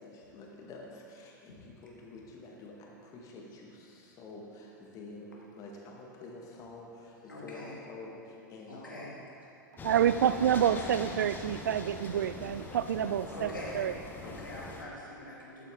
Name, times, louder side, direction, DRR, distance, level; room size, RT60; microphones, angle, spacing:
voice 1, 0.0-9.1 13.7-13.8 14.2-14.7, left 2 dB, 35° left, 1.8 m, -48 dB
voice 2, 7.3-7.8 8.7-9.1 13.3-13.8 14.2-15.7, left 1 dB, 85° left, 2.5 m, -44 dB
sound 1, 9.8-14.8, left 3 dB, 20° left, 1.0 m, -43 dB
voice 3, 9.8-13.5 13.7-13.9, right 9 dB, 65° right, 0.4 m, -28 dB
11.5 x 8.8 x 3.8 m
figure-of-eight pair, 95°, 11 cm